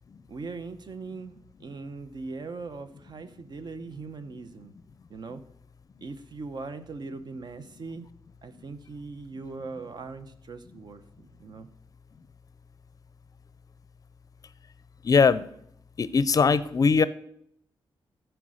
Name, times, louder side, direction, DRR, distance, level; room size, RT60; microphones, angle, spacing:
voice 1, 0.3-4.7 5.1-5.4 6.0-8.1 8.4-11.7, right 4 dB, 50° right, 10 dB, 0.9 m, -40 dB
voice 2, 15.0-15.4 16.0-17.0, left 5 dB, 40° left, 16 dB, 0.5 m, -20 dB
14.0 x 4.6 x 6.4 m, 0.70 s
wide cardioid pair, 115°, 9 cm